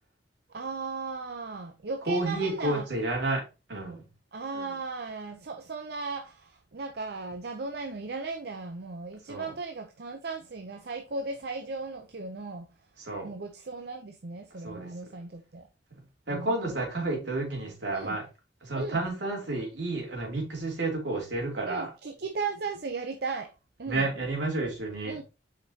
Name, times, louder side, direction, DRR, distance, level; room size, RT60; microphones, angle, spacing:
voice 1, 0.5-2.8 4.3-12.6 13.2-15.6 16.3-16.7 17.9-18.2 18.7-19.0 21.7-23.5 23.8-24.1 25.0-25.2, right 4 dB, 60° right, 0.6 m, -36 dB
voice 2, 2.1-3.4 3.7-4.0 9.3-9.5 13.0-13.3 14.6-14.9 16.3-18.2 18.6-21.9 23.9-25.2, right 2 dB, 75° right, 2.8 m, -30 dB
6.9 x 5.2 x 2.8 m
head